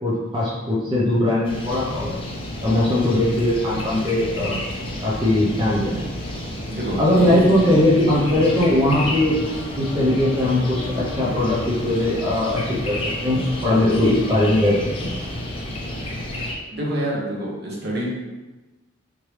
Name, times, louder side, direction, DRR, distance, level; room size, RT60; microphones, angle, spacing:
voice 1, 0.0-2.1 2.6-4.6 5.0-6.1 7.0-9.4 9.8-15.1, left 1 dB, 20° right, -7 dB, 0.6 m, -20 dB
sound 1, 1.4-16.5, left 1 dB, 25° left, 0.5 m, -31 dB
voice 2, 6.7-7.5 7.8-8.1 16.7-18.1, equal, 50° right, -4 dB, 0.9 m, -27 dB
sound 2, 8.2-16.4, left 3 dB, 85° left, 0.9 m, -37 dB
3.7 x 3.1 x 3.1 m, 1.1 s
head